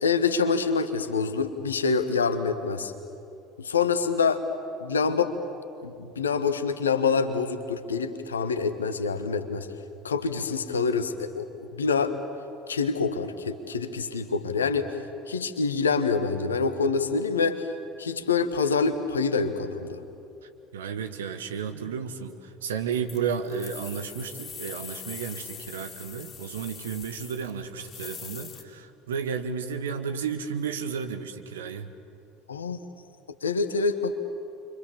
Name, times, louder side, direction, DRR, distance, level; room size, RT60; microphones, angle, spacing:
voice 1, 0.0-2.9 3.6-4.4 4.8-5.3 5.8-9.7 10.0-11.4 11.7-12.1 12.7-14.9 15.3-17.6 18.0-20.0 32.5-32.8 33.4-34.1, left 5 dB, 80° left, 9 dB, 1.3 m, -26 dB
voice 2, 20.7-31.9, right 6 dB, 75° right, 7 dB, 1.6 m, -33 dB
sound 1, 23.1-28.6, left 7 dB, 40° left, 2.7 m, -42 dB
29.5 x 24.5 x 7.2 m, 2.7 s
figure-of-eight pair, 65°, 0 cm